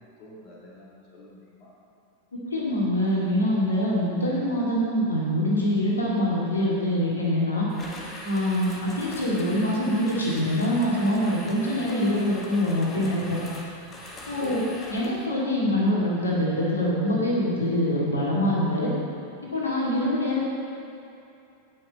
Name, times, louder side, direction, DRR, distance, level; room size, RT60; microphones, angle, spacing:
voice 1, 0.0-1.7 14.4-14.7, left 1 dB, 40° left, -5 dB, 1.9 m, -45 dB
voice 2, 2.5-7.7 8.2-13.4 14.3-14.6 14.9-18.9 19.4-20.5, left 1 dB, 75° left, -5 dB, 2.5 m, -24 dB
sound 1, 7.7-15.3, left 1 dB, 25° left, 1.6 m, -41 dB
17.0 x 6.2 x 4.3 m, 2.6 s
figure-of-eight pair, 90°, 0 cm